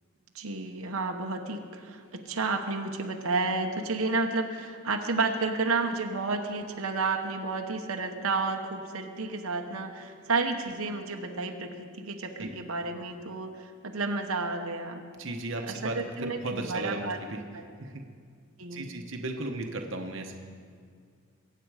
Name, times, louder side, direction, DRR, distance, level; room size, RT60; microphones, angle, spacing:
voice 1, 0.3-15.0 15.7-17.2 18.6-18.9, right 3 dB, 90° right, 3 dB, 1.1 m, -31 dB
voice 2, 15.2-17.4 17.8-18.0 18.7-20.3, right 2 dB, 65° right, 4 dB, 1.1 m, -35 dB
23.0 x 8.7 x 4.9 m, 2.1 s
head